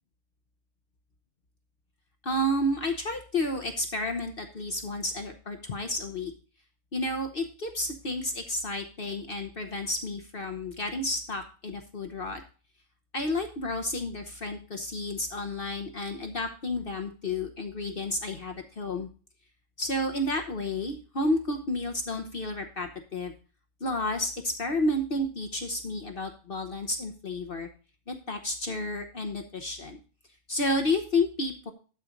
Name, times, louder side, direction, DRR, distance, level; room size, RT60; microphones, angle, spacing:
voice 1, 2.2-6.3 6.9-12.4 13.1-19.1 19.8-23.3 23.8-27.7 28.1-30.0 30.5-31.7, left 1 dB, 45° left, 5 dB, 1.0 m, -31 dB
12.0 x 4.3 x 5.0 m, 0.37 s
omnidirectional pair, 1.5 m